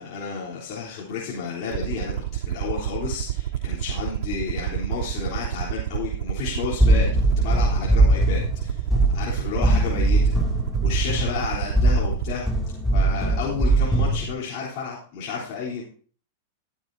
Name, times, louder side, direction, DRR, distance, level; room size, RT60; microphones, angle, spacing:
voice 1, 0.0-2.1 2.4-7.1 7.4-8.9 9.1-10.4 10.8-12.4 12.9-15.8, left 5 dB, 45° left, -7 dB, 3.8 m, -31 dB
Aircraft, 1.7-12.4, right 12 dB, 60° right, 0.6 m, -29 dB
sound 1, 6.8-14.3, right 1 dB, ahead, 2.6 m, -21 dB
15.5 x 11.0 x 2.8 m, 0.44 s
supercardioid pair, 150°, 0 cm